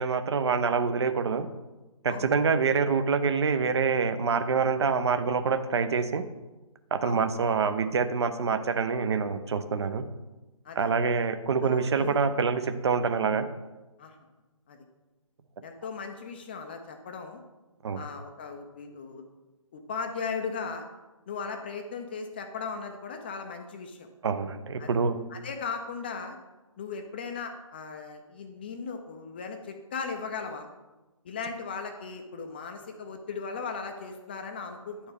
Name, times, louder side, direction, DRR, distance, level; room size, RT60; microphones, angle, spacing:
voice 1, 0.0-1.5 2.0-6.2 6.9-10.0 10.8-13.5 17.8-18.1 24.2-25.2, right 5 dB, 50° right, 10 dB, 0.6 m, -26 dB
voice 2, 11.6-12.2 14.0-14.2 14.7-14.8 15.6-17.4 17.9-19.2 19.7-20.8 21.3-24.1 24.8-24.9 25.3-26.4 26.8-30.7 31.2-35.0, left 5 dB, 20° left, 5 dB, 0.3 m, -37 dB
9.9 x 4.4 x 3.4 m, 1.1 s
figure-of-eight pair, 145°, 18 cm